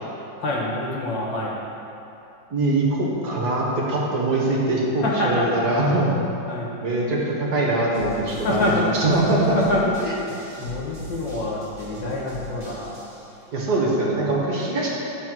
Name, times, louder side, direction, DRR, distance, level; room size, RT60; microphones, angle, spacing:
voice 1, 0.4-1.6 5.0-5.6 6.5-6.7 8.3-8.9 9.5-10.1 10.6-13.5, left 1 dB, 80° left, -3 dB, 1.9 m, -26 dB
voice 2, 2.5-6.1 6.8-9.5 10.0-10.1 13.5-14.9, right 2 dB, 60° right, -4 dB, 1.8 m, -22 dB
sound 1, 7.9-13.3, equal, 40° right, 1.7 m, -40 dB
9.1 x 4.3 x 6.1 m, 2.8 s
omnidirectional pair, 2.0 m